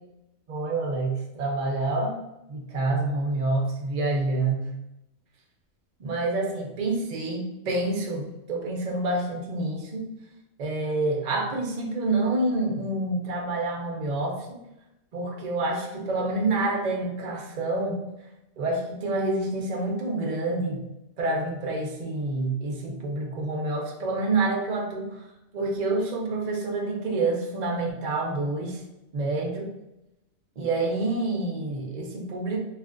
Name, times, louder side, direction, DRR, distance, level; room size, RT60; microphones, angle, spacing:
voice 1, 0.5-2.2 2.5-4.7 6.0-10.1 10.6-14.6 15.1-18.0 18.6-20.8 21.2-25.2 25.5-28.8 29.1-29.7 30.6-32.6, right 2 dB, 70° right, 1 dB, 0.4 m, -27 dB
3.0 x 2.4 x 2.5 m, 0.90 s
omnidirectional pair, 1.4 m